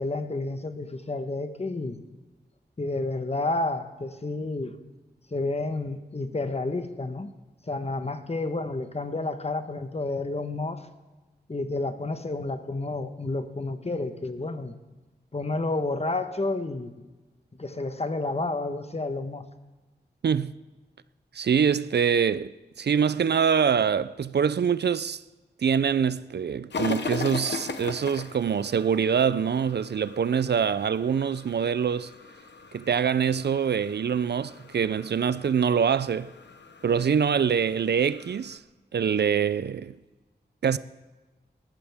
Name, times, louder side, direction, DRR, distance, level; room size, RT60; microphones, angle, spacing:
voice 1, 0.0-2.0 2.8-4.8 5.3-7.3 7.7-10.9 11.5-14.7 15.3-16.9 17.6-19.4, left 2 dB, 35° left, 1.2 m, -30 dB
voice 2, 21.3-22.5 22.8-25.2 25.6-32.1 32.7-36.3 36.8-38.6 38.9-40.0 40.6-40.8, right 7 dB, 70° right, 0.4 m, -24 dB
sound 1, 26.7-38.6, left 5 dB, 80° left, 1.0 m, -39 dB
19.5 x 14.0 x 3.6 m
wide cardioid pair, 70°, 18 cm